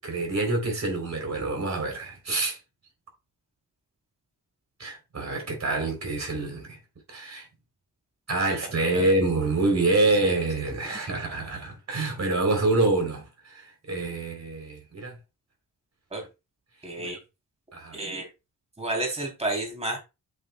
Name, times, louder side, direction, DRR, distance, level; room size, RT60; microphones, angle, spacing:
voice 1, 0.0-2.6 4.8-6.8 7.1-7.5 8.3-15.2 16.9-17.1 17.7-18.0, right 2 dB, 45° right, 3.4 m, -26 dB
voice 2, 16.8-17.2 17.9-18.3 18.8-20.0, right 2 dB, 15° right, 3.1 m, -31 dB
8.8 x 8.4 x 2.2 m
wide cardioid pair, 155°, 36 cm